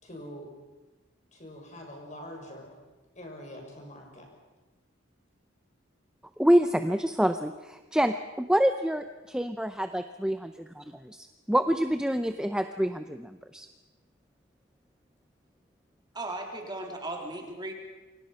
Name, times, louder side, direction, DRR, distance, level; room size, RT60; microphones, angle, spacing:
voice 1, 0.0-0.5 1.3-2.7 3.1-4.3, equal, 35° left, 1 dB, 6.2 m, -44 dB
voice 2, 6.4-13.7, equal, 5° right, 8 dB, 0.7 m, -27 dB
voice 3, 16.1-17.7, right 2 dB, 20° right, 2 dB, 3.4 m, -36 dB
28.5 x 24.0 x 5.7 m, 1.2 s
head